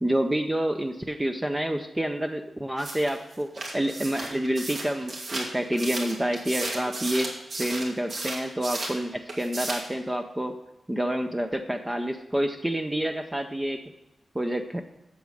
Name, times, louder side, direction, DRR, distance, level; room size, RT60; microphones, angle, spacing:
voice 1, 0.0-7.3 7.6-10.6 10.9-13.8 14.3-14.8, right 1 dB, 10° right, 5 dB, 0.5 m, -28 dB
sound 1, 2.8-9.0 9.3-9.9, right 2 dB, 60° right, 2.4 m, -34 dB
8.4 x 7.2 x 6.3 m, 0.97 s
wide cardioid pair, 150°, 0 cm